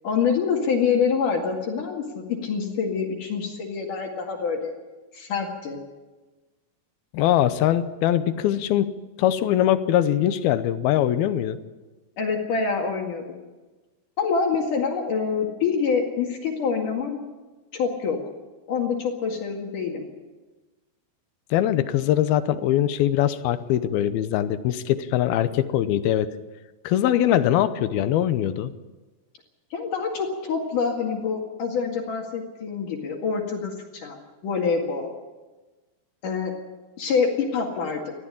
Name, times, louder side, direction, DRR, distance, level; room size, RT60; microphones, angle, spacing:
voice 1, 0.0-4.7 5.1-5.8 12.2-13.2 14.2-17.2 17.7-18.2 18.7-20.1 29.7-35.1 36.2-36.5 37.0-38.1, left 5 dB, 60° left, 1 dB, 3.4 m, -26 dB
voice 2, 7.1-8.9 9.2-11.6 21.5-26.3 26.8-28.7, left 11 dB, 80° left, 12 dB, 2.6 m, -22 dB
19.5 x 13.5 x 9.9 m, 1.2 s
omnidirectional pair, 4.4 m